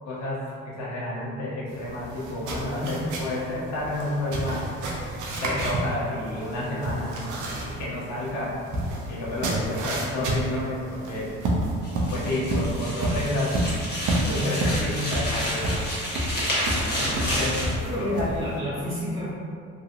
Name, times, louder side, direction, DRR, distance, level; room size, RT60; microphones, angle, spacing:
voice 1, 0.0-4.7 5.4-7.2 7.6-8.6 9.1-11.3 12.1-13.6 14.3-15.8 17.0-17.7 18.0-18.4, left 1 dB, 65° left, -6 dB, 1.0 m, -30 dB
sound 1, 1.7-18.6, right 1 dB, 80° right, 0.6 m, -30 dB
voice 2, 2.8-3.1 16.5-17.4 17.8-19.3, equal, 15° right, -15 dB, 1.2 m, -33 dB
sound 2, 11.8-17.8, equal, 35° left, 1.1 m, -30 dB
2.8 x 2.6 x 2.5 m, 2.2 s
cardioid pair, 90°, 30 cm